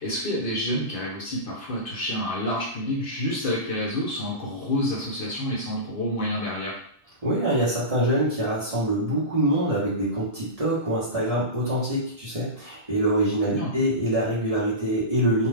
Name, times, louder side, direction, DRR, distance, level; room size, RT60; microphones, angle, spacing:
voice 1, 0.0-6.8 13.5-13.7, left 1 dB, 55° left, -4 dB, 0.7 m, -28 dB
voice 2, 7.2-15.5, right 1 dB, 35° right, -8 dB, 0.9 m, -24 dB
2.6 x 2.3 x 3.2 m, 0.63 s
omnidirectional pair, 1.2 m